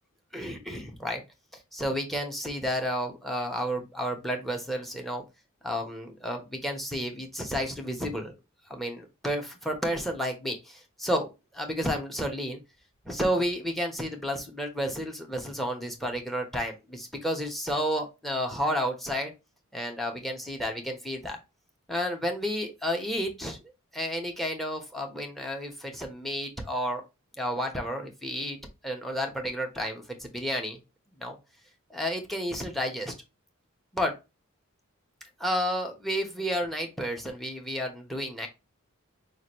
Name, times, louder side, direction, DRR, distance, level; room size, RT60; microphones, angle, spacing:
voice 1, 0.3-1.2 1.7-5.2 5.6-8.3 8.7-12.6 13.0-19.3 19.7-21.4 21.9-23.6 23.9-27.0 27.4-28.6 28.8-30.8 31.2-31.4 31.9-33.1 33.9-34.1 35.4-38.5, equal, ahead, 5 dB, 1.1 m, -31 dB
6.2 x 2.6 x 3.1 m, 0.25 s
head